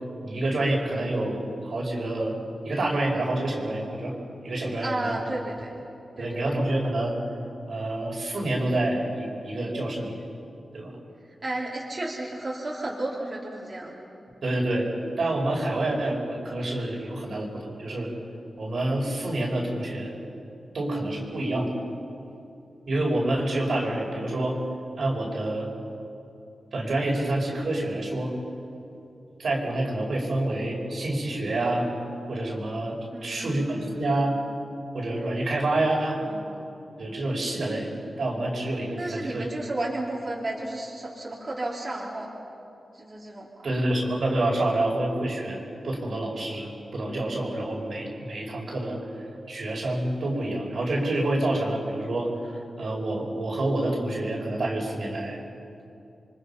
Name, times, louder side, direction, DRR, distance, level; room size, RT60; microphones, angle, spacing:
voice 1, 0.2-2.3 2.7-4.1 4.4-5.2 6.2-7.1 7.7-10.2 10.7-10.9 14.4-14.9 15.2-18.1 18.6-20.2 20.7-21.7 22.9-24.6 25.0-25.7 26.7-28.3 29.4-31.9 32.3-34.4 34.9-36.2 37.0-37.9 38.2-39.5 43.6-55.4, right 1 dB, 70° right, -2 dB, 5.2 m, -27 dB
voice 2, 4.8-5.7 6.2-6.4 11.2-14.0 33.1-34.2 36.2-36.7 39.0-42.3 42.9-43.7, right 2 dB, 40° right, -5 dB, 4.0 m, -33 dB
28.5 x 24.0 x 5.7 m, 2.7 s
wide cardioid pair, 80°, 0 cm